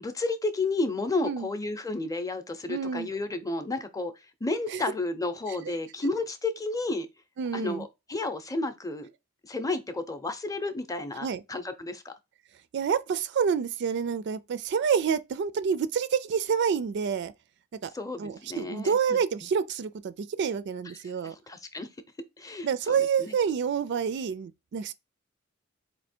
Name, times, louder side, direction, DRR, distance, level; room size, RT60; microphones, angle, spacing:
voice 1, 0.0-4.1 4.4-7.1 7.5-9.1 9.4-12.1 17.9-19.2 21.5-21.9 22.4-22.7 23.0-23.4, left 2 dB, 15° left, 0.6 m, -32 dB
voice 2, 2.7-3.1 4.7-4.8 5.5-5.6 7.4-7.9 11.2-11.4 12.7-17.3 17.8-17.9 18.2-21.4 22.6-24.9, right 6 dB, 55° right, 0.3 m, -28 dB
4.3 x 2.8 x 4.3 m
head